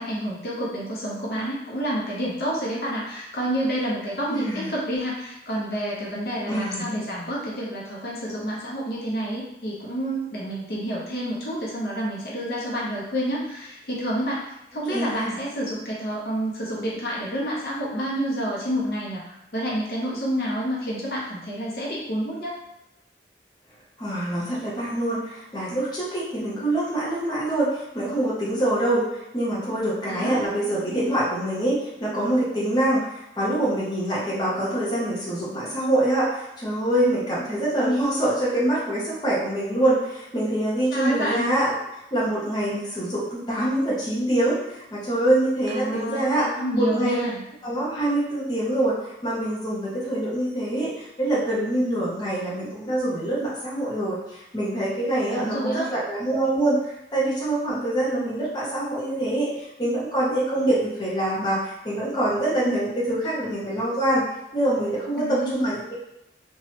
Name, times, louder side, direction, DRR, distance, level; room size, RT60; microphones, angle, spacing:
voice 1, 0.0-22.5 30.1-30.4 40.9-41.5 45.7-47.4 55.2-55.9 65.2-65.5, equal, 65° left, -5 dB, 0.7 m, -29 dB
voice 2, 4.3-4.7 6.5-7.1 14.9-15.4 24.0-47.3 47.6-48.9 49.2-56.8 57.1-64.2 64.5-66.0, right 1 dB, 25° left, -8 dB, 0.7 m, -25 dB
3.0 x 2.3 x 2.8 m, 0.86 s
head